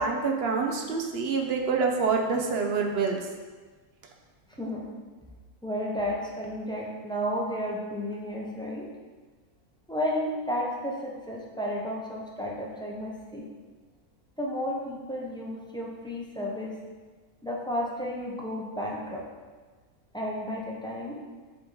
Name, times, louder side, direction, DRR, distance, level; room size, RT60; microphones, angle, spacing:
voice 1, 0.0-3.2, right 4 dB, 60° right, 2 dB, 0.7 m, -26 dB
voice 2, 5.6-8.9 9.9-13.4 14.4-16.7 17.4-19.2 20.1-21.2, equal, 5° left, -4 dB, 0.3 m, -32 dB
7.4 x 3.8 x 3.8 m, 1.4 s
omnidirectional pair, 1.6 m